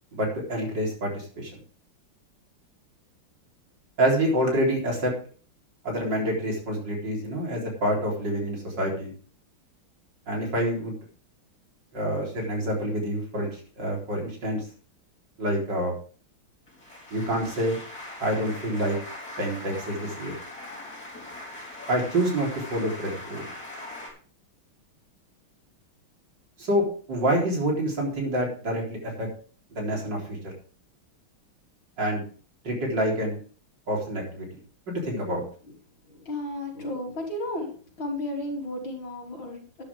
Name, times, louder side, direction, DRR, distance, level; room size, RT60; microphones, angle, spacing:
voice 1, 0.1-1.5 4.0-5.1 5.8-9.1 10.3-11.0 11.9-14.6 15.4-15.9 17.1-17.8 18.2-19.0 19.4-20.3 21.9-23.4 26.6-29.3 29.7-30.4 32.0-32.2 32.6-33.4 33.9-34.5 34.9-35.4, right 1 dB, 55° right, -1 dB, 4.5 m, -27 dB
sound 1, 16.7-24.1, left 1 dB, 45° left, 5.3 m, -41 dB
voice 2, 36.1-37.7 38.0-39.8, left 1 dB, 70° left, -1 dB, 4.2 m, -33 dB
12.5 x 10.5 x 3.6 m, 0.41 s
omnidirectional pair, 2.3 m